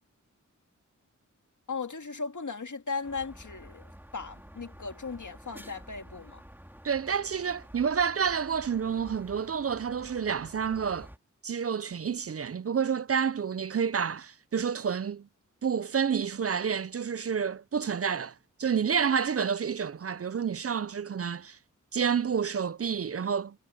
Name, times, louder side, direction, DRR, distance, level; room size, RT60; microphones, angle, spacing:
voice 1, 1.7-6.4, left 4 dB, 70° left, 2.0 m, -37 dB
sound 1, 3.0-11.2, equal, 5° right, 3.5 m, -50 dB
voice 2, 6.8-11.1 11.4-15.3 15.6-18.3 18.6-21.6 21.9-23.6, right 7 dB, 45° right, 0.5 m, -29 dB
cardioid pair, 40°, 32 cm